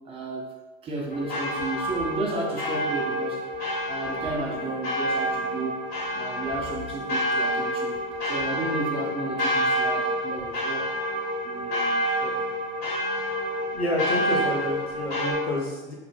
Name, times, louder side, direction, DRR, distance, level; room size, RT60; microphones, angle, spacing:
voice 1, 0.0-0.5 0.8-3.4 3.9-5.8 6.1-8.0 8.2-10.9 11.4-12.4, right 2 dB, 20° right, -1 dB, 0.4 m, -33 dB
sound 1, 1.1-15.3, equal, 45° left, 1.1 m, -28 dB
voice 2, 13.7-15.9, left 1 dB, 90° left, -2 dB, 0.6 m, -29 dB
2.1 x 2.0 x 3.1 m, 1.2 s
figure-of-eight pair, 75°, 30 cm